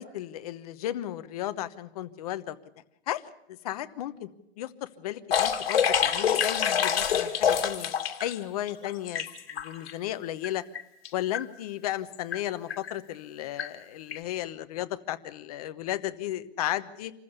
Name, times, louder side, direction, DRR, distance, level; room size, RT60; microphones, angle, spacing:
voice 1, 0.0-2.6 3.1-3.2 3.5-4.3 4.6-7.9 8.2-9.3 9.5-10.6 11.1-17.1, left 13 dB, 35° left, 11 dB, 1.0 m, -34 dB
sound 1, 5.3-8.3 8.7-9.9 10.4-10.5 10.7-11.1 11.3-11.4 12.1-12.4 12.7-12.9 13.6-13.7 14.1-14.2, left 8 dB, 65° left, 2.6 m, -26 dB
26.5 x 15.0 x 6.8 m, 0.85 s
hypercardioid pair, 155°, 32 cm